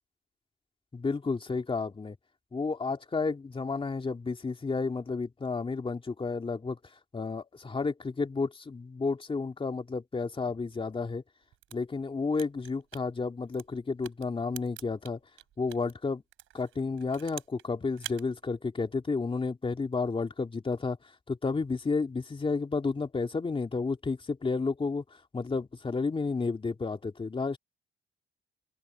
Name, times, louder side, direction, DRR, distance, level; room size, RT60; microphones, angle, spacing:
voice 1, 0.9-2.2 2.5-6.8 7.1-11.2 11.7-15.2 15.6-16.2 16.5-21.0 21.3-25.0 25.3-27.6, left 4 dB, 25° left, 2.7 m, -31 dB
sound 1, 11.4-15.9 16.3-17.7 17.9-18.2, right 14 dB, 85° right, 5.8 m, -46 dB
open air
cardioid pair, 90°, 20 cm